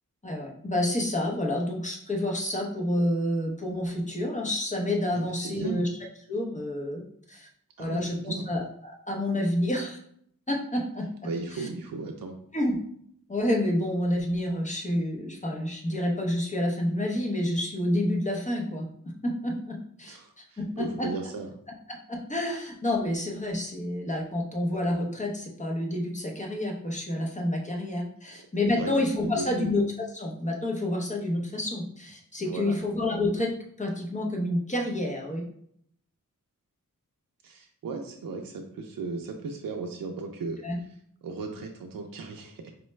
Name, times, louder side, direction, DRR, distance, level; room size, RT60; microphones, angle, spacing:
voice 1, 0.2-5.9 6.3-7.0 7.3-7.5 7.8-10.0 10.5-11.1 11.5-11.7 12.5-12.8 13.3-18.9 19.2-21.1 21.9-33.5 33.8-35.4 40.6-40.8, left 1 dB, 20° left, 0 dB, 0.8 m, -29 dB
voice 2, 5.1-5.8 7.8-8.5 11.2-12.4 20.0-21.5 28.7-28.9 29.2-29.7 32.5-32.8 37.4-42.7, right 4 dB, 90° right, 2 dB, 0.5 m, -36 dB
4.5 x 2.1 x 3.1 m, 0.67 s
wide cardioid pair, 90°, 33 cm